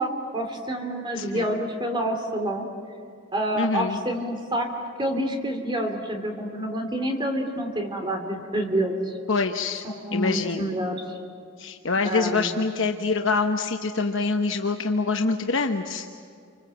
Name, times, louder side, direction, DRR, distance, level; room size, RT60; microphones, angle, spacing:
voice 1, 0.0-2.7 3.3-4.7 5.0-8.9 9.8-11.2 12.0-12.5, right 1 dB, 25° right, 4 dB, 3.1 m, -28 dB
voice 2, 1.1-1.5 3.5-4.0 9.3-9.8 10.1-10.7 11.6-16.0, left 4 dB, 65° left, 4 dB, 1.1 m, -25 dB
30.0 x 25.0 x 7.8 m, 2.2 s
head